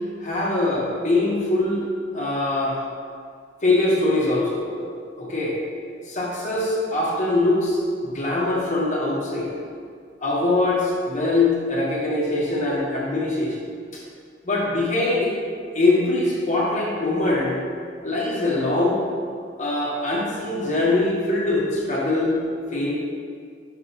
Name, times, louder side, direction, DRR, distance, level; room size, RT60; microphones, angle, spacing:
voice 1, 0.2-1.8 2.1-2.8 3.6-4.9 5.2-5.6 6.0-9.5 10.2-13.6 14.4-15.3 15.7-17.6 18.0-19.0 19.6-22.4 22.7-22.9, left 2 dB, 40° left, -5 dB, 1.4 m, -22 dB
6.0 x 3.8 x 5.8 m, 2.2 s
head